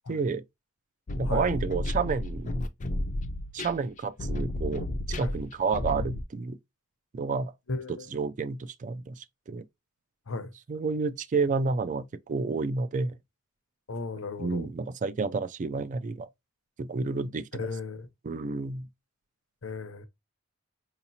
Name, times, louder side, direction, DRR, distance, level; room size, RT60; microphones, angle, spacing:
voice 1, 0.1-0.4 1.2-2.6 3.5-4.8 5.2-6.6 7.1-7.5 7.9-9.6 10.7-13.2 14.4-16.3 16.8-17.6 18.2-18.9, right 4 dB, 35° right, 0.3 m, -30 dB
sound 1, 1.1-6.2, left 1 dB, 35° left, 0.4 m, -32 dB
voice 2, 7.7-8.1 10.3-10.5 13.9-14.7 17.6-18.1 19.6-20.1, left 3 dB, 70° left, 0.7 m, -35 dB
4.7 x 2.9 x 2.7 m
head